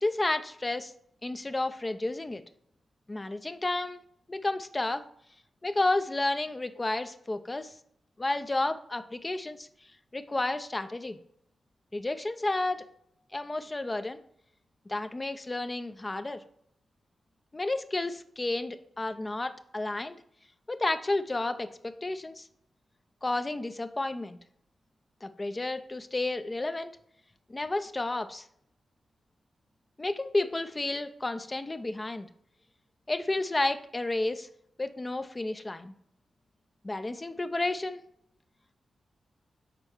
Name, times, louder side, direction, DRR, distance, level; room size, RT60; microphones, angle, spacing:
voice 1, 0.0-0.9 1.2-2.4 3.1-4.0 4.3-5.0 5.6-7.7 8.2-9.7 10.1-11.2 11.9-12.8 13.3-14.2 14.9-16.4 17.5-20.2 20.7-22.4 23.2-24.4 25.2-27.0 27.5-28.5 30.0-32.3 33.1-34.5 34.8-35.9 36.8-38.0, left 2 dB, 30° left, 9 dB, 0.6 m, -31 dB
6.8 x 4.4 x 4.5 m, 0.70 s
supercardioid pair, 45°, 0 cm